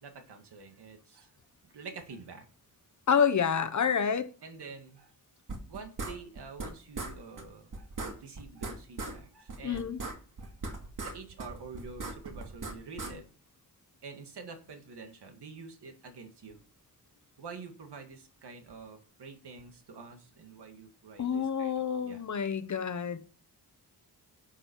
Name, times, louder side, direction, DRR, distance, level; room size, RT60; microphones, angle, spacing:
voice 1, 0.0-1.3 1.6-2.4 4.4-5.1 5.7-10.0 10.4-10.5 11.0-13.2 14.0-16.6 17.4-22.2, right 4 dB, 90° right, 2.1 m, -47 dB
voice 2, 3.1-4.3 9.6-10.0 21.2-23.2, left 7 dB, 45° left, 0.9 m, -28 dB
sound 1, 5.5-6.7 6.9-7.1 7.4-7.5 7.7-9.2 9.5-11.1 11.4-13.1, right 3 dB, 55° right, 2.3 m, -38 dB
11.0 x 7.5 x 4.6 m
wide cardioid pair, 175°, 39 cm